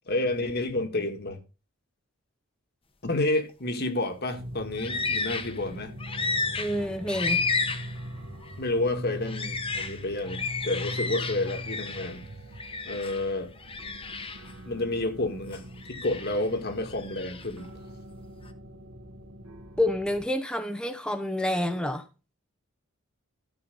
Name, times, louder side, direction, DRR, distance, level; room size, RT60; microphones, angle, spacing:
voice 1, 0.1-1.4 3.0-5.9 8.6-12.2 12.9-13.5 14.7-15.6 15.9-17.7, left 2 dB, 50° left, 1.7 m, -30 dB
sound 1, 4.3-20.2, equal, 85° right, 2.2 m, -42 dB
sound 2, 4.7-5.6 6.0-8.0 8.4-8.6 9.2-12.2 12.6-13.3 13.6-14.5 15.5-16.5 16.9-17.5, left 4 dB, 25° left, 1.1 m, -32 dB
voice 2, 6.6-7.4 19.8-22.0, left 1 dB, 5° left, 0.8 m, -28 dB
13.0 x 5.7 x 5.3 m
head